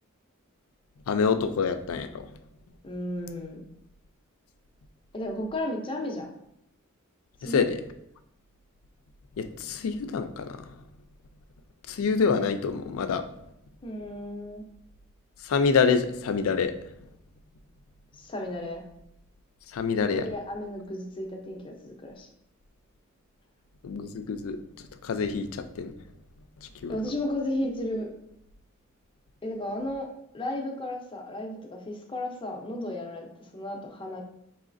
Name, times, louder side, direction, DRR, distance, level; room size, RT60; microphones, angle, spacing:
voice 1, 1.1-2.2 7.4-7.8 9.4-10.7 11.9-13.2 15.4-16.7 19.7-20.3 23.8-25.9 26.6-27.0, left 5 dB, 80° left, 9 dB, 0.4 m, -27 dB
voice 2, 2.8-3.6 5.1-6.3 7.4-7.6 13.8-14.6 18.1-18.8 20.0-22.3 26.9-28.1 29.4-30.1 30.3-34.2, left 1 dB, 25° left, 2 dB, 0.6 m, -34 dB
4.9 x 3.1 x 2.5 m, 0.76 s
head